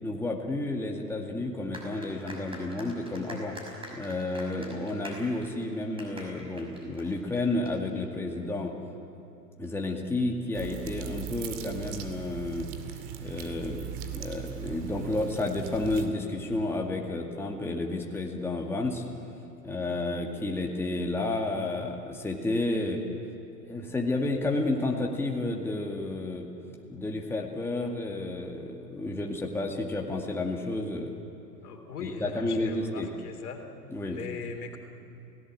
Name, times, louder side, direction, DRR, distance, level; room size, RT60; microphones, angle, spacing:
voice 1, 0.0-3.6 3.9-8.7 9.6-12.7 13.2-13.9 14.1-19.0 19.6-23.0 23.7-26.5 26.9-31.1 32.0-33.1 33.9-34.2, left 2 dB, 5° left, 0 dB, 2.1 m, -31 dB
sound 1, 1.7-7.7, equal, 10° right, 5.9 m, -45 dB
sound 2, 10.5-16.1, right 10 dB, 45° right, 2.5 m, -39 dB
voice 2, 31.6-33.7 34.0-34.8, left 5 dB, 65° left, 5 dB, 3.0 m, -39 dB
29.5 x 17.5 x 7.7 m, 2.9 s
hypercardioid pair, 105°, 47 cm